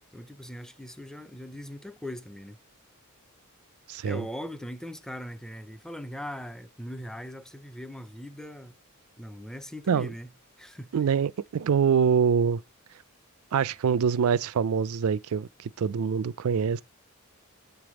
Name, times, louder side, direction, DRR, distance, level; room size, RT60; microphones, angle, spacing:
voice 1, 0.1-2.6 4.0-8.8 9.2-10.3 10.6-11.0, equal, 5° left, 0.4 m, -40 dB
voice 2, 3.9-4.2 9.9-10.1 10.9-12.6 13.5-16.8, right 6 dB, 65° right, 0.4 m, -25 dB
8.2 x 3.4 x 6.1 m
head